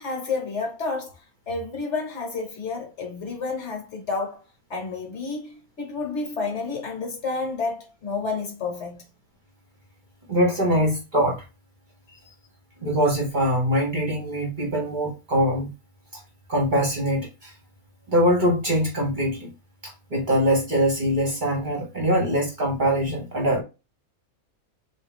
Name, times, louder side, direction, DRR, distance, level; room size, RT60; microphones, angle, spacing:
voice 1, 0.0-4.4 4.7-9.0, left 4 dB, 55° left, 1.3 m, -30 dB
voice 2, 10.3-11.4 12.8-15.7 16.5-17.5 18.1-19.5 19.8-23.6, equal, 40° right, 1.0 m, -23 dB
3.5 x 2.6 x 3.5 m
omnidirectional pair, 1.5 m